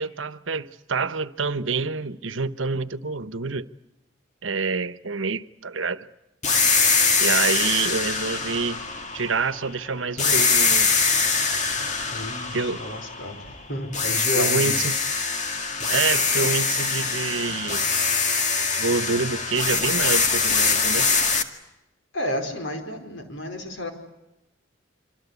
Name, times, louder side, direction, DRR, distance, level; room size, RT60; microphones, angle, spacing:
voice 1, 0.0-3.7 4.4-6.1 7.2-8.9 9.1-10.9 12.5-12.8 14.4-14.9 15.9-17.8 18.8-21.1, right 4 dB, 85° right, 1.1 m, -27 dB
sound 1, 6.4-9.7 10.2-13.5 13.9-21.4, left 4 dB, 40° left, 2.0 m, -23 dB
voice 2, 12.1-14.8 22.1-23.9, left 1 dB, 75° left, 5.0 m, -31 dB
26.0 x 26.0 x 8.4 m
head